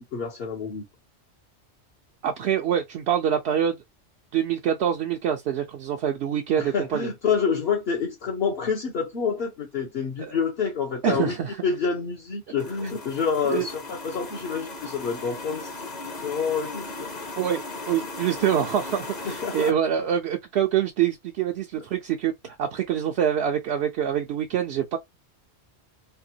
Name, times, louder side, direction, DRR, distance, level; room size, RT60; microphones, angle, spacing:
voice 1, 0.1-0.8 6.6-11.4 11.6-15.9 16.2-17.1 19.2-19.7, left 6 dB, 60° left, 1.0 m, -28 dB
voice 2, 2.2-3.8 4.3-7.1 10.2-10.4 11.0-11.6 13.5-13.7 17.4-22.3 22.6-25.0, right 9 dB, 70° right, 0.8 m, -25 dB
sound 1, 12.6-19.7, left 3 dB, 45° left, 0.9 m, -37 dB
3.4 x 2.2 x 2.7 m
omnidirectional pair, 1.1 m